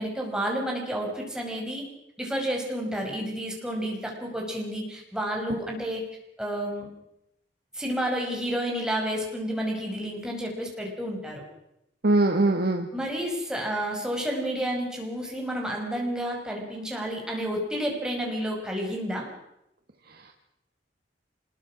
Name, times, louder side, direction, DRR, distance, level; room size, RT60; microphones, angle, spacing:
voice 1, 0.0-1.8 2.2-6.0 6.4-6.9 7.8-11.4 12.9-19.3, equal, 5° right, -1 dB, 5.9 m, -30 dB
voice 2, 12.0-12.9 20.1-20.3, right 2 dB, 60° right, 3 dB, 1.7 m, -23 dB
25.5 x 21.0 x 6.3 m, 0.82 s
head